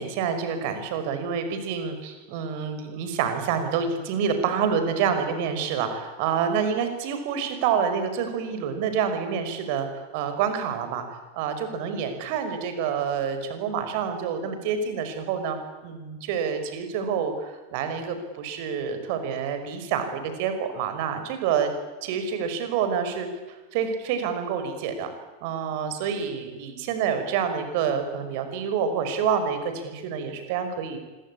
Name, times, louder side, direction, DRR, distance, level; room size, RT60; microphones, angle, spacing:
voice 1, 0.0-11.0 11.3-21.7 22.0-25.1 25.4-31.0, right 7 dB, 45° right, 8 dB, 5.5 m, -28 dB
26.0 x 22.5 x 8.6 m, 1.2 s
figure-of-eight pair, 90°, 0 cm